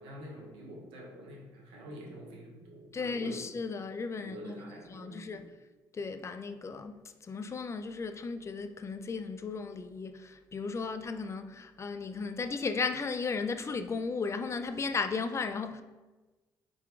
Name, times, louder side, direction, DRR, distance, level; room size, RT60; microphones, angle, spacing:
voice 1, 0.0-3.4 4.1-5.4, equal, 85° right, 0.8 m, -47 dB
voice 2, 2.9-4.5 4.9-5.5 5.9-15.8, left 4 dB, 35° left, 0.3 m, -35 dB
4.2 x 3.8 x 2.4 m
supercardioid pair, 60°, 9 cm